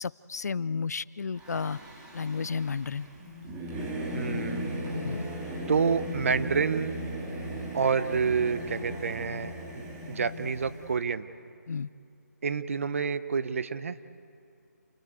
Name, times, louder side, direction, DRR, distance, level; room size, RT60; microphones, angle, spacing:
voice 1, 0.0-1.8 2.1-3.1 4.9-5.3 11.7-11.9, left 5 dB, 70° left, 20 dB, 0.5 m, -32 dB
Singing / Musical instrument, 1.4-10.9, equal, 15° right, 2.1 m, -37 dB
voice 2, 4.1-5.0 5.7-7.0 7.7-11.3 12.4-14.0, right 5 dB, 50° right, 13 dB, 0.9 m, -29 dB
28.0 x 17.0 x 8.2 m, 2.4 s
hypercardioid pair, 165°, 9 cm